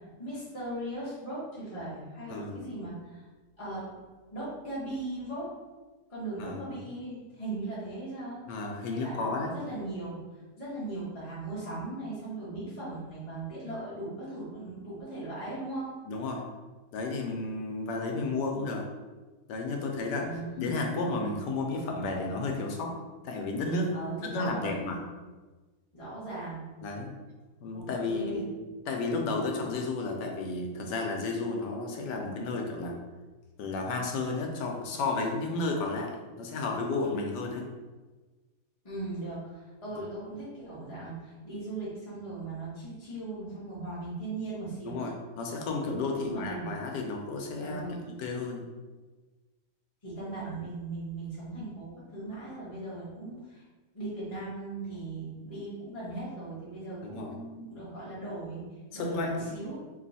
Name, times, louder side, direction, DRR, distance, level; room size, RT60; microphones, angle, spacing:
voice 1, 0.2-3.2 3.6-3.9 4.3-5.5 6.1-8.4 8.9-10.2 10.6-15.9 20.2-20.8 23.9-24.8 25.9-26.7 27.7-28.4 38.8-39.4 39.8-45.1 46.2-46.7 47.6-48.0 50.0-53.6 53.9-58.6 58.9-59.8, right 2 dB, 25° left, -10 dB, 1.0 m, -38 dB
voice 2, 2.3-2.7 6.4-6.8 8.5-9.5 16.0-16.4 16.9-18.8 19.5-20.3 20.6-23.0 23.2-23.9 24.2-25.0 26.8-27.1 27.6-28.5 28.9-33.0 33.6-37.6 39.9-40.0 44.8-47.8 48.2-48.7 57.0-57.4 58.9-59.3, left 3 dB, 85° left, 1 dB, 1.3 m, -32 dB
3.1 x 3.1 x 4.0 m, 1.3 s
omnidirectional pair, 1.8 m